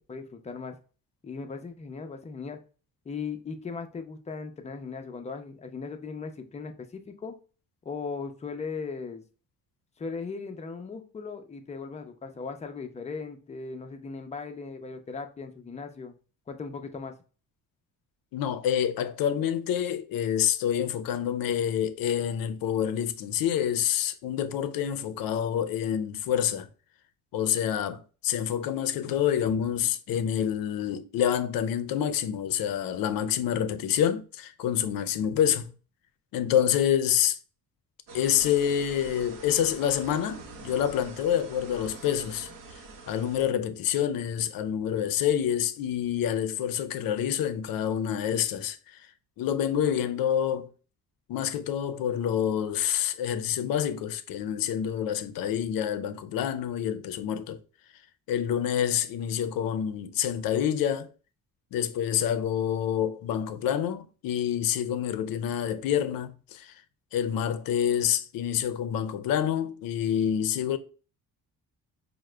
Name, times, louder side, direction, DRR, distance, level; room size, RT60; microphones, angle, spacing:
voice 1, 0.1-0.8 1.2-2.6 3.1-7.4 7.8-9.2 10.0-16.1 16.5-17.2, left 5 dB, 20° left, 0.4 m, -38 dB
voice 2, 18.3-26.7 27.3-35.7 36.3-37.4 38.1-42.5 43.1-49.0 49.4-50.7 51.3-57.6 58.3-61.1 61.7-66.7 67.1-70.8, left 9 dB, 80° left, 0.5 m, -27 dB
sound 1, 38.1-43.5, right 3 dB, 65° right, 0.8 m, -45 dB
4.7 x 2.1 x 3.2 m
cardioid pair, 155°, 34 cm